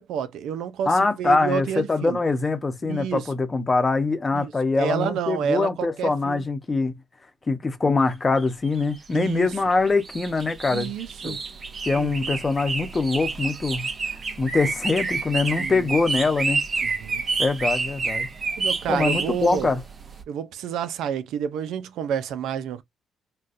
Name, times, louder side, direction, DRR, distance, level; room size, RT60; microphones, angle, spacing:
voice 1, 0.0-2.2 2.8-3.3 4.3-4.5 4.8-6.5 9.1-9.5 10.7-11.4 11.9-12.4 15.6-15.9 16.8-17.2 18.6-19.7 20.3-22.8, right 8 dB, 85° right, 0.4 m, -29 dB
voice 2, 0.9-6.9 7.5-10.9 11.2-11.4 11.8-13.9 14.4-16.6 17.4-18.3 18.9-19.8, left 3 dB, 30° left, 0.8 m, -23 dB
sound 1, 8.4-20.2, right 4 dB, 40° right, 0.8 m, -29 dB
4.0 x 2.2 x 2.5 m
cardioid pair, 90°, 0 cm